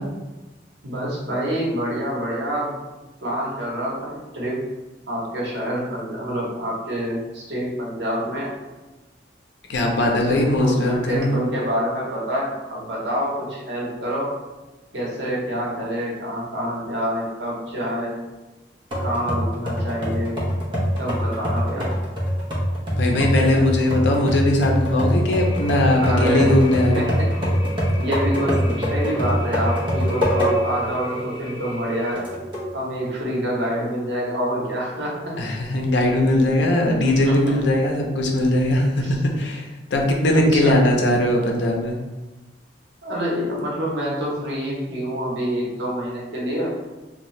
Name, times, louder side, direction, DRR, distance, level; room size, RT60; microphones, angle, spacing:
voice 1, 0.8-2.7 3.2-4.6 5.1-8.5 9.8-14.3 14.9-18.2 19.0-20.4 21.0-21.9 26.0-26.6 26.9-27.1 27.4-32.2 32.7-35.4 37.0-37.6 39.0-39.2 40.3-40.8 43.0-46.7, equal, 80° right, -4 dB, 0.9 m, -27 dB
voice 2, 9.7-11.4 23.0-27.1 35.4-39.7 39.9-42.0, left 1 dB, 75° left, 1 dB, 0.6 m, -20 dB
sound 1, 18.9-30.8 31.3-31.4 32.2-32.7, equal, 30° right, 0.7 m, -24 dB
sound 2, 25.3-32.1, right 1 dB, 5° right, 1.3 m, -36 dB
2.7 x 2.2 x 3.1 m, 1.1 s
head